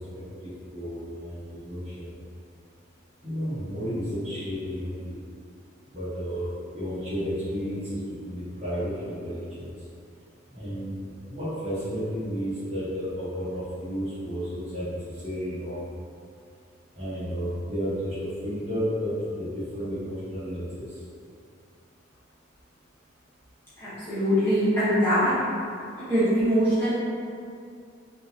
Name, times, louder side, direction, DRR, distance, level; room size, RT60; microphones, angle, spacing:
voice 1, 0.4-2.1 3.2-5.2 5.9-6.4 6.7-9.7 10.5-15.8 16.9-20.9, equal, 35° right, -12 dB, 1.1 m, -32 dB
voice 2, 23.8-25.3 26.1-26.9, equal, 10° left, -14 dB, 1.1 m, -22 dB
3.7 x 2.7 x 2.8 m, 2.4 s
head